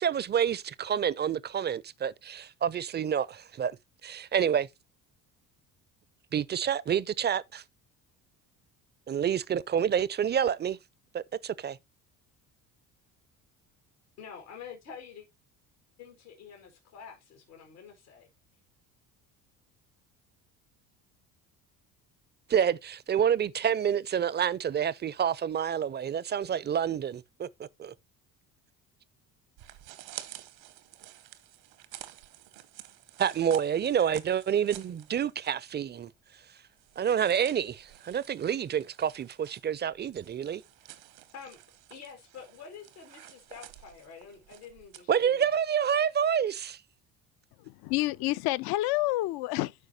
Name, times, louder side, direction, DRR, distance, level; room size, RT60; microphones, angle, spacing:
voice 1, 0.0-3.7 4.0-4.7 6.3-7.6 9.1-10.8 11.1-11.8 22.5-27.9 33.2-36.1 37.0-40.6 45.1-46.8, right 8 dB, 25° right, 0.5 m, -28 dB
voice 2, 14.2-15.3 16.0-18.3 41.3-41.6 41.9-45.6, left 6 dB, 85° left, 2.1 m, -47 dB
sound 1, 29.6-35.7 36.0-36.1 36.7-45.0, right 14 dB, 75° right, 1.1 m, -50 dB
voice 3, 47.6-49.7, left 18 dB, 60° left, 0.5 m, -29 dB
13.0 x 4.6 x 2.7 m
hypercardioid pair, 60°, 45 cm